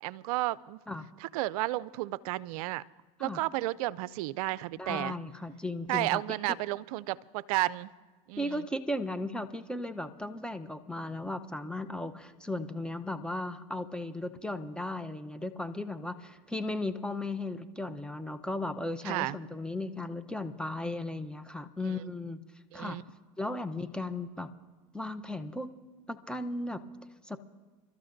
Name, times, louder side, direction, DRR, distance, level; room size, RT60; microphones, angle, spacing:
voice 1, 0.0-0.8 1.2-2.8 3.2-5.1 5.9-7.9 8.3-8.7 19.0-19.4 22.7-23.0, right 18 dB, 75° right, 21 dB, 0.4 m, -32 dB
voice 2, 4.8-6.2 8.4-22.4 22.7-23.0 23.4-24.5 24.9-25.7 26.1-26.8 27.2-27.4, left 2 dB, 5° left, 9 dB, 0.8 m, -36 dB
29.0 x 13.0 x 2.6 m, 1.3 s
supercardioid pair, 95°, 19 cm